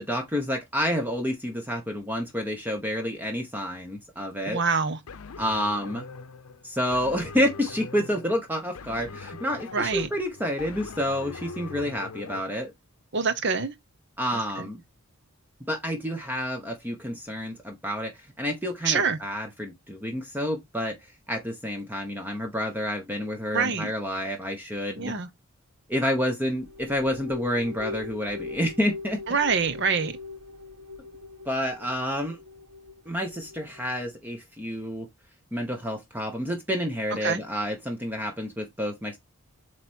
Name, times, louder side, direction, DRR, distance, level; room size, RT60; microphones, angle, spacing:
voice 1, 0.0-4.6 5.4-6.1 6.6-12.7 14.2-14.8 15.7-18.1 18.4-20.9 21.3-25.1 25.9-29.2 31.5-32.4 33.1-35.1 35.5-39.2, equal, 10° right, 1.0 m, -29 dB
voice 2, 4.5-5.0 9.7-10.1 13.1-13.7 14.6-14.7 18.8-19.2 23.5-23.9 25.0-25.3 29.3-30.1 37.2-37.4, right 5 dB, 50° right, 0.9 m, -25 dB
sound 1, 5.1-12.4, left 5 dB, 85° left, 0.6 m, -42 dB
sound 2, 26.4-34.0, left 3 dB, 90° right, 1.9 m, -41 dB
8.0 x 3.3 x 4.4 m
head